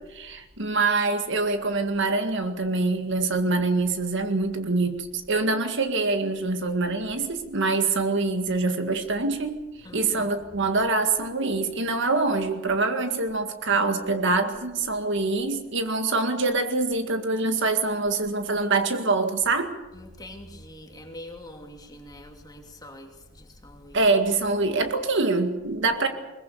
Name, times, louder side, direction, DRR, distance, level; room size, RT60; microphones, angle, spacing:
voice 1, 0.0-9.6 9.9-19.7 23.9-26.1, right 3 dB, 60° right, 7 dB, 2.0 m, -25 dB
voice 2, 9.8-10.3 19.9-24.0, left 1 dB, 20° left, 3 dB, 2.7 m, -44 dB
22.0 x 20.5 x 7.0 m, 1.1 s
head